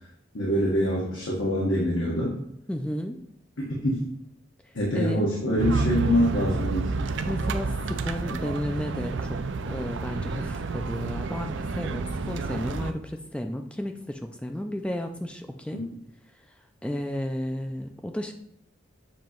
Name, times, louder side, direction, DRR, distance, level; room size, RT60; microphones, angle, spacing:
voice 1, 0.3-2.3 3.6-4.0 4.7-6.9 15.7-15.8, equal, 85° left, -5 dB, 1.4 m, -25 dB
voice 2, 2.7-3.2 4.9-5.2 7.3-9.4 9.7-15.8 16.8-18.3, left 1 dB, 5° left, 5 dB, 0.3 m, -33 dB
sound 1, 5.6-12.9, right 3 dB, 65° right, 0.5 m, -30 dB
7.5 x 2.9 x 5.1 m, 0.75 s
head